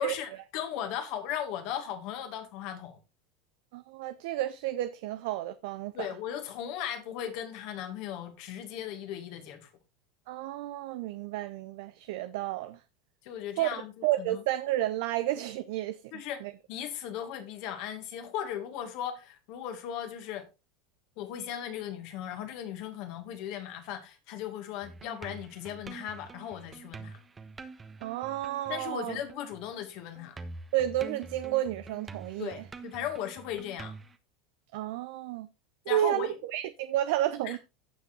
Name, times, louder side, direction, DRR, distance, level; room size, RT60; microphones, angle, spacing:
voice 1, 0.0-3.0 5.9-9.7 13.2-13.9 14.2-14.4 16.1-16.4 16.7-20.5 21.2-27.2 28.7-30.4 32.4-34.0 35.9-36.4 37.4-37.6, left 10 dB, 60° left, 2.1 m, -37 dB
voice 2, 3.7-6.1 10.3-12.8 13.6-16.0 16.4-16.5 28.0-29.2 30.7-32.7 34.7-35.5 35.9-37.6, right 14 dB, 65° right, 0.6 m, -31 dB
sound 1, 24.8-29.9 30.1-34.1, right 4 dB, 20° right, 1.1 m, -46 dB
16.5 x 5.9 x 2.7 m
hypercardioid pair, 85°, 0 cm